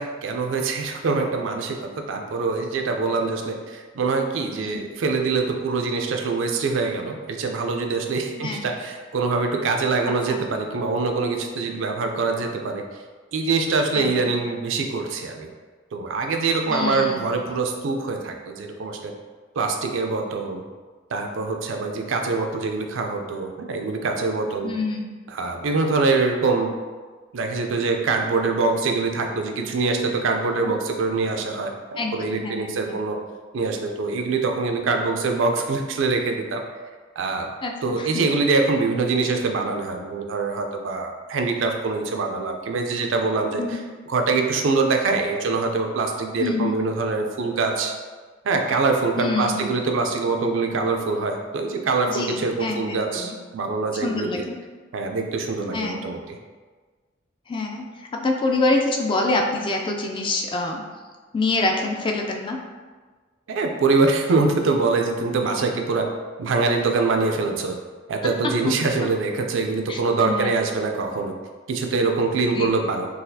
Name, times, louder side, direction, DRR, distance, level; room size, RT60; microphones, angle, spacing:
voice 1, 0.0-12.8 13.3-15.5 15.9-19.1 19.6-20.6 21.1-24.7 25.3-26.7 27.3-33.2 33.5-36.6 37.2-37.5 37.8-43.8 44.1-47.9 48.4-54.5 54.9-56.4 63.5-66.1 66.4-67.7 68.1-71.3 71.7-73.1, right 3 dB, 70° right, 3 dB, 0.4 m, -24 dB
voice 2, 13.9-14.3 16.7-17.2 24.6-25.0 30.6-30.7 32.0-33.0 37.6-38.1 43.6-43.8 46.4-46.8 49.2-49.7 52.0-53.3 53.9-54.5 55.7-56.1 57.5-57.9 58.1-60.8 61.3-62.6 68.6-68.7 69.9-70.5 72.5-72.7, left 2 dB, 25° left, 2 dB, 0.3 m, -26 dB
3.9 x 2.3 x 2.7 m, 1.4 s
head